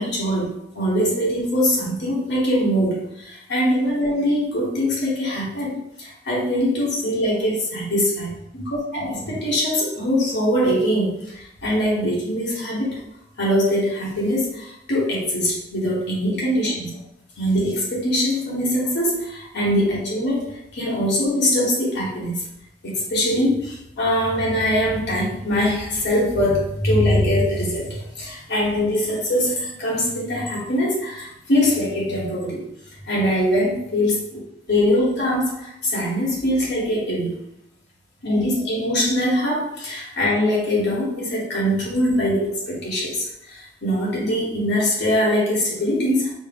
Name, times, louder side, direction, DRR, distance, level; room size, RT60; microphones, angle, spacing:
voice 1, 0.0-13.0 13.4-17.0 17.4-22.4 22.8-32.6 33.0-34.4 34.7-37.4 38.2-46.3, equal, 65° left, -4 dB, 1.2 m, -22 dB
4.3 x 2.1 x 3.6 m, 0.81 s
head